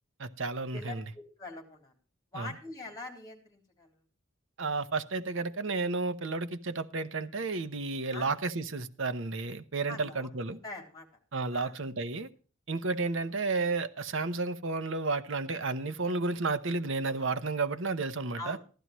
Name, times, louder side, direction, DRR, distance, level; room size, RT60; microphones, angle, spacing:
voice 1, 0.2-1.0 2.3-2.5 4.6-10.6 11.3-12.3 12.7-18.6, right 3 dB, 65° right, 11 dB, 0.9 m, -32 dB
voice 2, 0.7-1.9 2.3-3.9 8.1-8.3 9.9-11.1 11.5-11.8 18.4-18.6, left 2 dB, 20° left, 2 dB, 3.5 m, -44 dB
15.0 x 12.5 x 3.1 m, 0.38 s
head